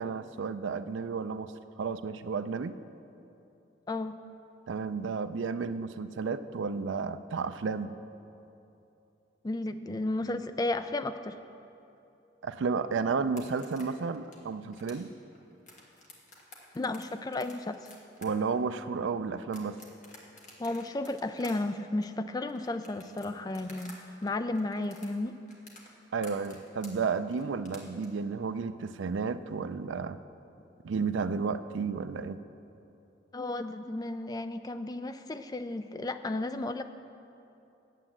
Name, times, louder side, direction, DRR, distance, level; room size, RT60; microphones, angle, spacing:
voice 1, 0.0-1.5 1.8-2.8 4.7-7.9 12.4-15.1 18.2-19.8 26.1-30.2 30.8-32.4, right 5 dB, 75° right, 11 dB, 0.4 m, -32 dB
voice 2, 3.9-4.2 9.4-11.4 16.7-17.8 20.6-25.3 33.3-36.8, left 2 dB, 20° left, 10 dB, 0.3 m, -33 dB
sound 1, 13.2-24.0 24.2-28.1, left 2 dB, 40° left, 1.5 m, -52 dB
9.2 x 7.8 x 7.3 m, 2.8 s
head